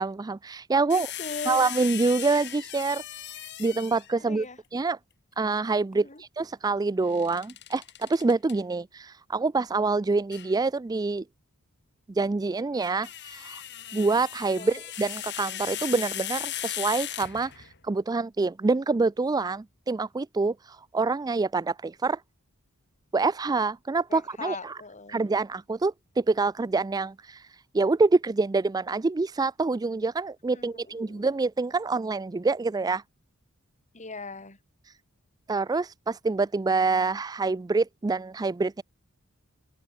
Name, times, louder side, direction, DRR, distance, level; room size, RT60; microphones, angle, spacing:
voice 1, 0.0-1.1 1.5-3.0 3.6-4.4 4.7-5.0 5.4-11.2 12.2-13.6 13.9-22.2 23.1-24.8 25.1-27.4 27.7-33.0 35.5-38.8, right 3 dB, 20° right, 0.3 m, -26 dB
sound 1, 0.9-4.2 7.1-8.5 10.3-10.5 12.6-17.8, left 12 dB, 55° left, 3.6 m, -37 dB
voice 2, 0.9-1.7 4.2-4.6 5.9-6.2 14.6-14.8 24.1-25.2 30.5-31.3 33.9-34.6, left 3 dB, 35° left, 6.0 m, -39 dB
head